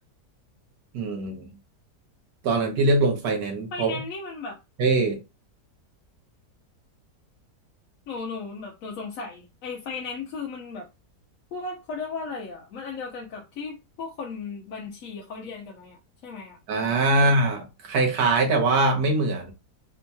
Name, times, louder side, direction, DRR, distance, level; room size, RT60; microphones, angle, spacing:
voice 1, 0.9-1.5 2.4-4.0 4.8-5.2 16.7-19.5, right 2 dB, 70° right, 1.5 m, -22 dB
voice 2, 3.7-4.6 8.1-10.9 11.5-16.6 17.1-17.3, left 4 dB, 65° left, 1.0 m, -36 dB
4.4 x 2.8 x 2.2 m
omnidirectional pair, 1.8 m